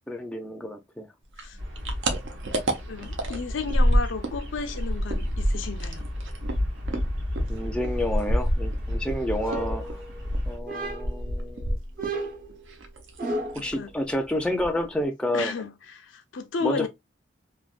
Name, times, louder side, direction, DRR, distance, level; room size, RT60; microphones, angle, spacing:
voice 1, 0.1-1.1 7.5-10.0 10.5-11.8 13.5-15.7 16.6-16.9, left 1 dB, 5° left, 0.4 m, -29 dB
sound 1, 1.3-4.4 4.7-9.2 9.5-12.2 12.5-13.2 13.5-13.8 14.1-14.2 14.5-15.0, equal, 85° right, 0.7 m, -27 dB
Bird vocalization bird call bird song, 1.6-10.6, left 1 dB, 70° right, 1.2 m, -33 dB
voice 2, 2.9-6.0 13.7-13.9 15.3-16.9, left 5 dB, 90° left, 0.6 m, -33 dB
sound 2, 9.4-10.3 10.7-11.3 12.0-13.7, right 2 dB, 50° right, 0.8 m, -33 dB
3.2 x 2.2 x 2.4 m
head